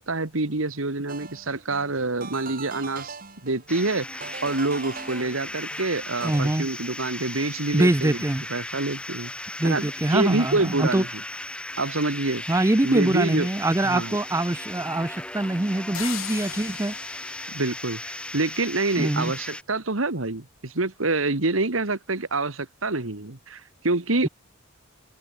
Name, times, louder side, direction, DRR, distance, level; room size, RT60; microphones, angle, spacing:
voice 1, 0.0-8.2 8.5-11.1 11.8-12.4 12.8-13.5 13.9-14.2 17.5-24.3, right 2 dB, 85° right, 2.0 m, -27 dB
sound 1, 1.1-6.4, right 4 dB, 45° right, 6.9 m, -41 dB
sound 2, 3.7-19.6, left 1 dB, 5° left, 2.0 m, -37 dB
voice 2, 6.2-6.7 7.7-8.4 9.6-11.0 12.5-16.9 19.0-19.3, right 1 dB, 15° right, 0.5 m, -24 dB
sound 3, 15.9-18.8, left 11 dB, 90° left, 1.3 m, -39 dB
head